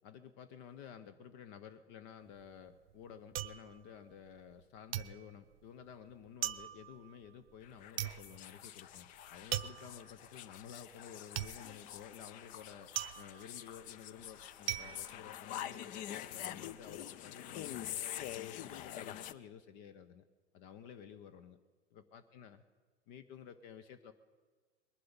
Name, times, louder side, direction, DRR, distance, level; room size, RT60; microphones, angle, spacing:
voice 1, 0.0-18.0 18.3-20.2 20.5-21.6 21.9-22.6 23.1-24.1, left 8 dB, 40° left, 11 dB, 0.8 m, -53 dB
sound 1, 2.2-4.6 4.9-16.0 16.4-17.0, right 12 dB, 55° right, 0.6 m, -42 dB
sound 2, 7.6-19.3, left 12 dB, 25° left, 0.4 m, -46 dB
20.5 x 11.5 x 5.2 m, 1.5 s
figure-of-eight pair, 90°, 35 cm